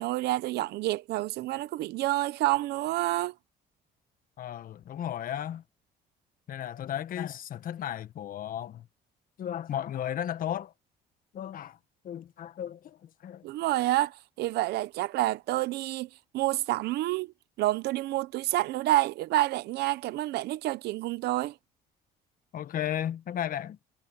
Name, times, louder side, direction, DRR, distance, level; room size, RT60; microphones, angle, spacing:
voice 1, 0.0-3.3 13.4-16.1 16.3-17.3 17.6-21.5, right 16 dB, 75° right, 0.8 m, -28 dB
voice 2, 4.4-5.6 6.5-8.9 9.4-10.7 11.3-11.8 12.0-13.4 22.5-23.9, left 10 dB, 55° left, 1.4 m, -34 dB
cardioid pair, 110°, 17 cm